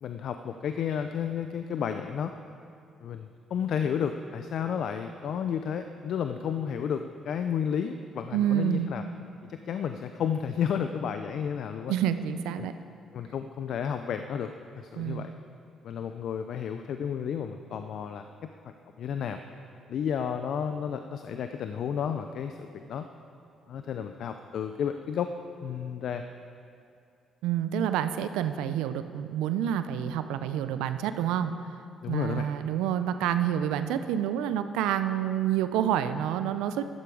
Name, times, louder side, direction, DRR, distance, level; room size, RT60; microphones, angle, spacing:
voice 1, 0.0-2.3 3.0-9.0 9.5-11.9 12.6-12.7 13.1-15.3 15.8-18.3 19.0-19.4 19.9-23.1 23.7-25.3 25.6-26.2 32.0-32.5, left 8 dB, 65° left, 8 dB, 0.6 m, -32 dB
voice 2, 8.3-8.9 11.9-12.7 15.0-15.2 27.4-31.5 32.1-36.8, right 10 dB, 80° right, 10 dB, 0.6 m, -28 dB
15.5 x 13.0 x 4.9 m, 2.5 s
hypercardioid pair, 55°, 0 cm